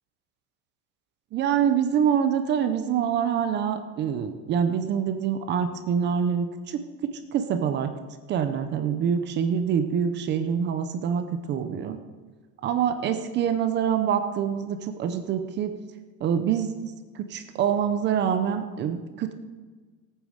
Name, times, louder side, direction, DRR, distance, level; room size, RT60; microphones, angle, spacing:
voice 1, 1.3-7.9 8.3-12.0 12.6-15.7 16.2-16.7 17.1-19.3, right 8 dB, 25° right, 9 dB, 0.6 m, -25 dB
16.5 x 9.1 x 6.4 m, 1.4 s
cardioid pair, 175°, 43 cm